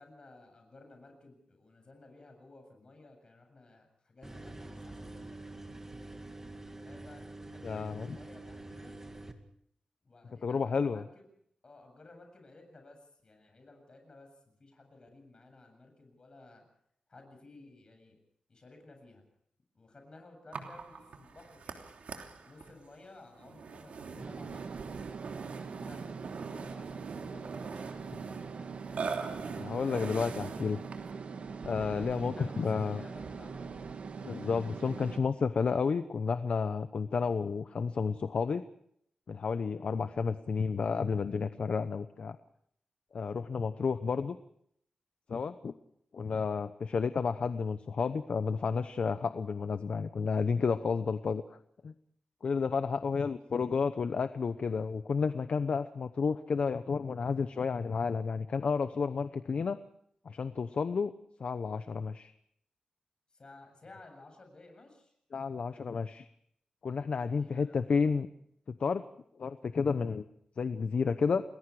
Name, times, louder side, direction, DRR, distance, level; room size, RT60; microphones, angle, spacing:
voice 1, 0.0-5.5 6.8-9.0 10.0-11.2 11.6-16.6 17.1-18.2 18.5-19.2 19.7-21.8 22.4-24.8 25.6-28.7 31.8-33.9 52.8-53.1 63.3-65.1 67.2-67.9, left 2 dB, 40° left, 4 dB, 7.7 m, -55 dB
sound 1, 4.2-9.3, right 2 dB, 20° right, 2.2 m, -46 dB
voice 2, 7.6-8.2 10.4-11.0 29.5-30.8 31.6-33.0 34.2-38.6 39.3-42.4 43.1-44.4 45.3-45.7 46.1-51.6 51.8-51.9 52.4-59.8 60.2-61.1 61.4-62.3 65.3-66.3 66.8-68.3 68.7-69.0 69.4-70.2 70.6-71.4, left 5 dB, 60° left, 11 dB, 0.8 m, -31 dB
Burping eructation, 20.5-31.2, right 5 dB, 85° right, 3.0 m, -43 dB
sound 2, 24.2-35.2, right 5 dB, 70° right, 1.6 m, -42 dB
29.0 x 21.0 x 4.9 m, 0.69 s
wide cardioid pair, 135°, 2 cm